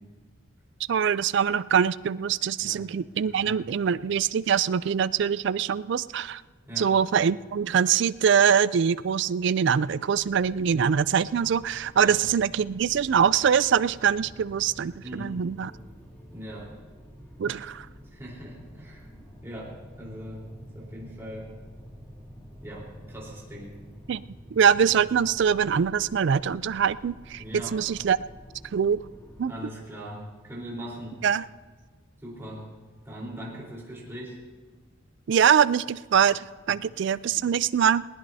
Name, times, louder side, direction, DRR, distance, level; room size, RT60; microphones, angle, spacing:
voice 1, 0.9-6.4 6.8-15.7 17.4-17.9 24.1-24.2 24.5-28.2 28.7-29.0 29.4-29.5 31.2-31.5 35.3-38.0, right 7 dB, 60° right, 17 dB, 0.3 m, -23 dB
voice 2, 3.3-3.6 6.7-6.9 12.0-12.2 15.0-15.4 16.3-16.7 18.1-19.1 19.4-21.5 22.6-23.7 27.4-27.7 29.5-31.2 32.2-32.7 33.1-34.4 36.7-36.8, equal, 10° right, -5 dB, 3.9 m, -40 dB
sound 1, 10.1-29.4, equal, 10° left, 2.2 m, -48 dB
20.5 x 19.0 x 2.7 m, 1.4 s
head